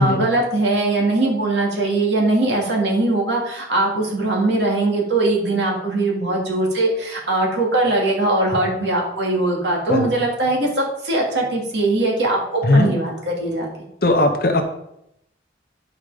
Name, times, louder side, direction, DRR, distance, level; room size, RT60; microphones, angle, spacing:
voice 1, 0.0-13.7, right 2 dB, 75° right, -2 dB, 2.6 m, -20 dB
voice 2, 12.6-12.9 14.0-14.6, left 2 dB, 55° left, 5 dB, 0.8 m, -17 dB
9.9 x 5.1 x 5.0 m, 0.81 s
head